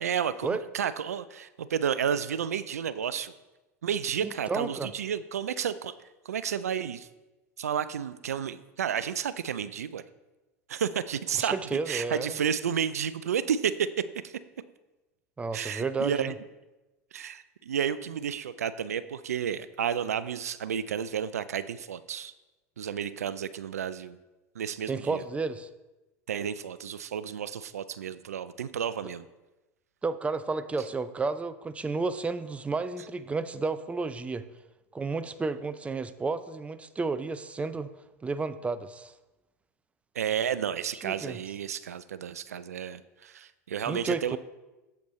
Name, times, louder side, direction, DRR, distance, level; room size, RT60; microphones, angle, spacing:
voice 1, 0.0-3.3 3.8-5.9 6.3-7.1 7.6-10.0 10.7-13.9 14.2-14.3 15.5-16.3 17.1-22.3 22.8-24.2 24.6-25.2 26.3-29.2 40.2-44.4, right 8 dB, 90° right, 15 dB, 0.3 m, -31 dB
voice 2, 4.2-4.9 11.4-12.4 15.4-16.3 24.9-25.7 30.0-34.4 34.9-37.9 38.2-39.1 40.9-41.4 43.9-44.4, right 3 dB, 15° right, 13 dB, 0.5 m, -32 dB
8.3 x 7.7 x 3.1 m, 1.1 s
hypercardioid pair, 85°, 8 cm